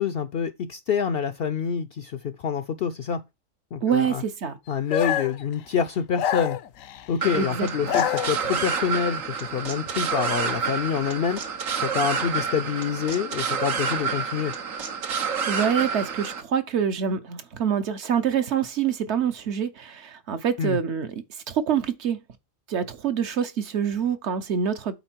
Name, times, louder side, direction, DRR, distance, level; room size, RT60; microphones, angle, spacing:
voice 1, 0.0-3.2 3.7-4.2 4.7-6.6 7.1-11.4 11.8-14.5 20.6-20.8, left 7 dB, 65° left, 0.6 m, -27 dB
voice 2, 3.8-4.6 7.3-8.0 15.2-21.1 21.5-22.2 22.7-25.0, right 8 dB, 60° right, 1.0 m, -26 dB
sound 1, 4.9-5.4 6.2-7.1 7.7-8.8, left 10 dB, 80° left, 1.0 m, -27 dB
sound 2, 7.2-16.4, right 6 dB, 80° right, 1.4 m, -29 dB
8.1 x 4.2 x 4.4 m
omnidirectional pair, 1.4 m